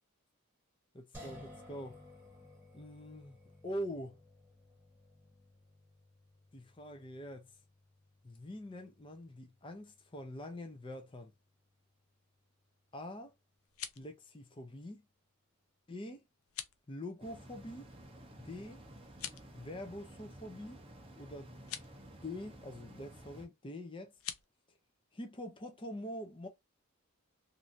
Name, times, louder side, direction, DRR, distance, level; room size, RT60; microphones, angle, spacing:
voice 1, 0.9-2.0 2.7-3.4 3.6-4.2 6.5-7.5 8.2-11.3 12.9-13.3 14.0-15.0 15.9-16.3 16.9-17.9 18.4-18.8 19.5-20.8 21.2-21.5 22.2-24.1 25.1-26.5, left 1 dB, 20° left, 0.5 m, -44 dB
sound 1, 1.1-14.2, left 1 dB, 10° right, 1.0 m, -59 dB
sound 2, 13.5-14.1 16.4-16.8 19.1-19.5 21.6-21.9 24.1-24.5, left 10 dB, 75° left, 0.5 m, -44 dB
sound 3, 17.2-23.4, right 1 dB, 25° right, 0.6 m, -53 dB
3.1 x 2.6 x 2.6 m
head